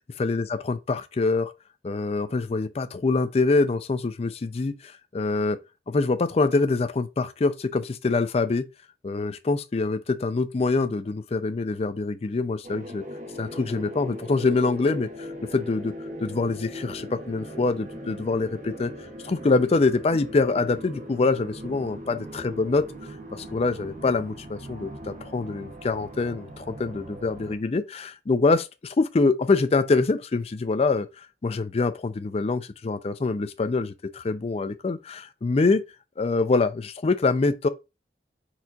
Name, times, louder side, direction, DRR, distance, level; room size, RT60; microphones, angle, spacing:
voice 1, 0.2-1.5 1.8-5.6 5.9-8.7 9.0-13.0 13.4-15.9 16.2-18.9 19.2-22.8 23.3-31.1 31.4-35.8 36.2-37.7, left 3 dB, 35° left, 0.4 m, -25 dB
sound 1, 12.6-27.6, equal, 45° right, 0.8 m, -39 dB
4.4 x 4.0 x 2.4 m
head